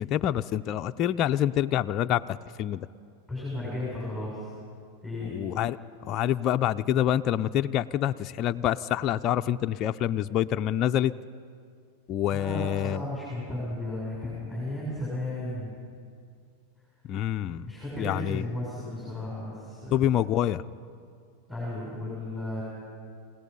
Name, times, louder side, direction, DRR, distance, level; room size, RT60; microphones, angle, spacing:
voice 1, 0.0-2.9 5.3-5.8 6.0-11.1 12.1-13.0 17.1-17.7 18.0-18.4 19.9-20.6, left 11 dB, 40° left, 8 dB, 0.5 m, -26 dB
voice 2, 3.3-4.5 5.0-5.3 12.3-15.7 17.6-20.1 21.5-22.6, left 1 dB, ahead, -6 dB, 7.1 m, -34 dB
28.5 x 17.0 x 5.5 m, 2.2 s
hypercardioid pair, 105°, 0 cm